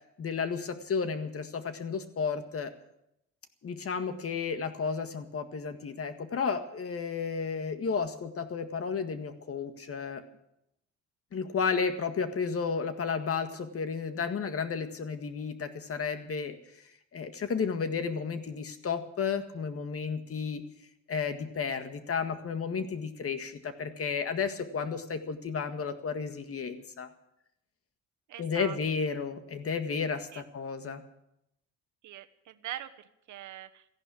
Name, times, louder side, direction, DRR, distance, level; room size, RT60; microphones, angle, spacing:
voice 1, 0.2-2.7 3.6-10.2 11.3-16.6 17.1-20.6 21.1-27.1 28.4-31.0, left 5 dB, 50° left, 9 dB, 1.8 m, -32 dB
voice 2, 28.3-28.8 30.3-30.4 32.0-33.8, right 12 dB, 75° right, 11 dB, 1.1 m, -42 dB
14.5 x 11.0 x 8.6 m, 0.82 s
cardioid pair, 90°, 30 cm